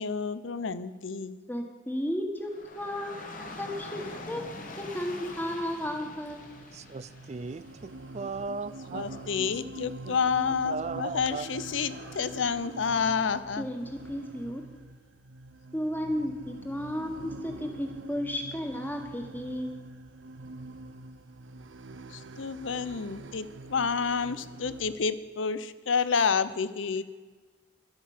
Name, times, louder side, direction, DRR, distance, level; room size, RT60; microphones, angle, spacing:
voice 1, 0.0-1.4 8.9-13.7 22.1-27.0, left 5 dB, 80° left, 15 dB, 0.6 m, -29 dB
voice 2, 1.5-4.5 4.8-6.4 13.6-14.6 15.7-19.8, equal, 10° left, 3 dB, 1.5 m, -34 dB
Dog / Rain, 2.4-14.6, left 2 dB, 45° left, 1.4 m, -47 dB
sound 1, 6.3-25.0, right 2 dB, 80° right, 0.7 m, -45 dB
voice 3, 6.7-9.1 10.1-10.2 10.7-11.5, right 4 dB, 35° right, 17 dB, 0.4 m, -37 dB
11.0 x 8.8 x 7.3 m, 1.3 s
head